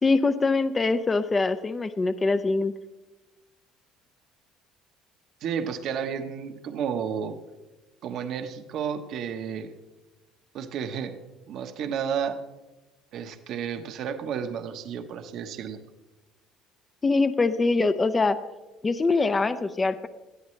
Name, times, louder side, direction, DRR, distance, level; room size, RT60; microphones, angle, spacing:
voice 1, 0.0-2.7 17.0-18.4 18.8-20.1, left 3 dB, 20° left, 11 dB, 0.5 m, -23 dB
voice 2, 5.4-7.4 8.0-9.7 10.5-11.2 11.5-12.4 13.1-15.8, right 7 dB, 60° right, 7 dB, 1.1 m, -32 dB
19.5 x 13.0 x 3.2 m, 1.1 s
cardioid pair, 125°, 0 cm